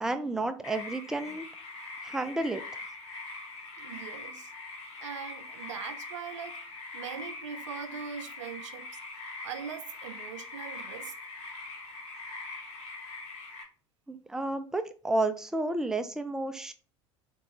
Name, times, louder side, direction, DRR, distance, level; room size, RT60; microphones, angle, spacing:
voice 1, 0.0-1.7 2.0-2.6 14.1-16.7, right 2 dB, 5° right, 0.3 m, -31 dB
sound 1, 0.6-13.6, left 3 dB, 75° left, 1.0 m, -42 dB
voice 2, 3.8-4.5 5.0-6.6 6.9-8.9 9.4-11.1, right 8 dB, 85° right, 0.4 m, -41 dB
3.5 x 2.2 x 2.8 m
hypercardioid pair, 75°, 15 cm